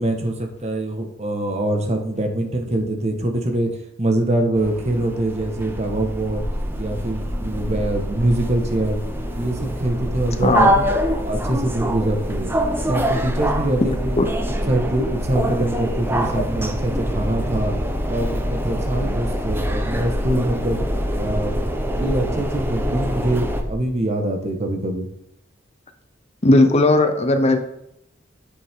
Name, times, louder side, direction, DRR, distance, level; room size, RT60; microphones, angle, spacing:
voice 1, 0.0-3.7 4.0-6.4 6.8-9.0 9.3-10.6 10.9-12.5 12.9-14.2 14.7-17.7 18.1-20.8 21.2-21.5 22.0-25.1, right 1 dB, 35° right, 3 dB, 1.5 m, -24 dB
sound 1, 4.6-23.6, right 1 dB, 10° right, 0.9 m, -27 dB
sound 2, 5.7-23.7, equal, 15° left, 2.2 m, -28 dB
voice 2, 10.4-10.8 12.0-12.1 14.2-14.3 16.3-16.4 26.4-27.6, left 2 dB, 35° left, 7 dB, 0.8 m, -16 dB
9.7 x 8.0 x 3.7 m, 0.81 s
head